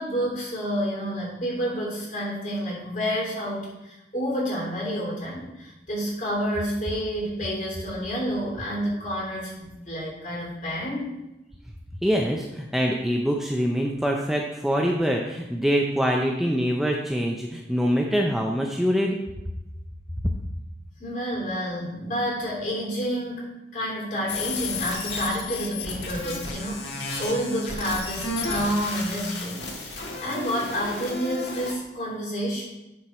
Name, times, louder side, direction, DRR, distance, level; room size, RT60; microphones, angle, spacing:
voice 1, 0.0-11.1 21.0-32.6, equal, 45° left, -3 dB, 3.2 m, -29 dB
voice 2, 12.0-19.2, equal, ahead, 0 dB, 0.5 m, -24 dB
sound 1, 24.3-31.7, left 3 dB, 80° left, 1.6 m, -33 dB
10.5 x 4.6 x 4.3 m, 0.97 s
head